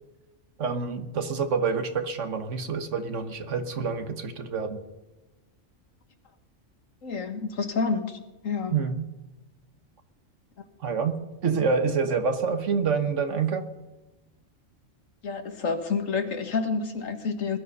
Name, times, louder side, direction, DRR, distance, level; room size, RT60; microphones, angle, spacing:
voice 1, 0.6-4.8 8.7-9.1 10.8-13.7, right 5 dB, 70° right, 8 dB, 1.5 m, -27 dB
voice 2, 7.0-8.2 8.4-8.8 10.6-10.7 15.2-17.6, left 5 dB, 85° left, 7 dB, 1.9 m, -29 dB
20.5 x 12.0 x 5.5 m, 1.1 s
omnidirectional pair, 1.3 m